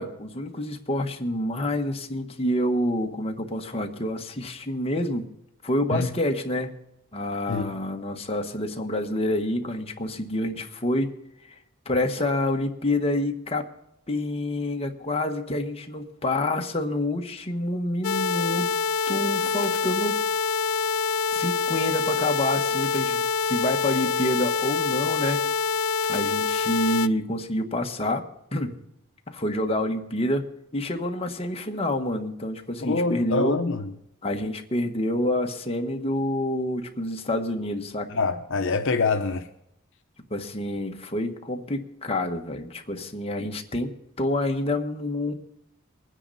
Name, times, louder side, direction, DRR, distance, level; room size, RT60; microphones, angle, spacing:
voice 1, 0.0-5.3 5.6-6.8 7.1-11.1 11.5-11.6 11.8-13.6 14.1-18.7 19.1-20.1 21.3-25.4 26.1-28.2 28.5-28.7 29.3-30.4 30.7-33.5 34.2-38.1 40.3-45.3, left 1 dB, 30° left, 1.5 m, -27 dB
sound 1, 18.0-27.1, left 5 dB, 80° left, 0.4 m, -26 dB
voice 2, 32.8-33.9 38.1-39.5, left 4 dB, 65° left, 0.9 m, -25 dB
22.5 x 9.9 x 4.2 m
head